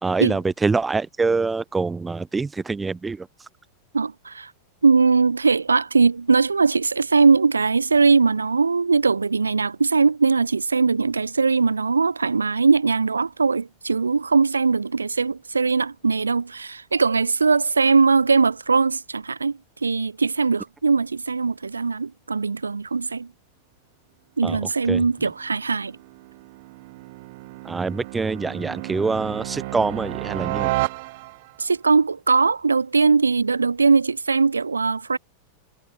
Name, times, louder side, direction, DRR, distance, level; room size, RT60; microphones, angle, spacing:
voice 1, 0.0-3.3 24.4-25.1 27.6-30.7, right 4 dB, 10° right, 1.9 m, -25 dB
voice 2, 3.9-4.5 4.8-23.3 24.4-25.9 31.6-35.2, right 4 dB, 75° right, 0.8 m, -20 dB
sound 1, 25.2-31.6, right 22 dB, 50° right, 1.6 m, -32 dB
figure-of-eight pair, 90°, 0 cm